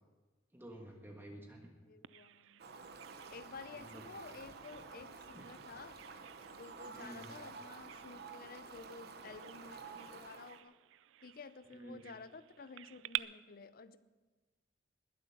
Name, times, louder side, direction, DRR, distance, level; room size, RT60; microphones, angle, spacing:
voice 1, 0.5-1.7 3.6-4.1 5.3-5.5 6.9-7.3 11.7-12.0, right 1 dB, 10° right, 0 dB, 1.5 m, -51 dB
voice 2, 1.8-2.6 3.3-6.0 6.5-10.8 11.2-14.0, left 4 dB, 50° left, 13 dB, 0.6 m, -52 dB
Bird vocalization bird call bird song, 2.0-13.2, right 14 dB, 75° right, 0.3 m, -50 dB
Fowl, 2.6-10.6, right 4 dB, 55° right, 1.0 m, -51 dB
21.0 x 7.9 x 5.8 m, 1.3 s
head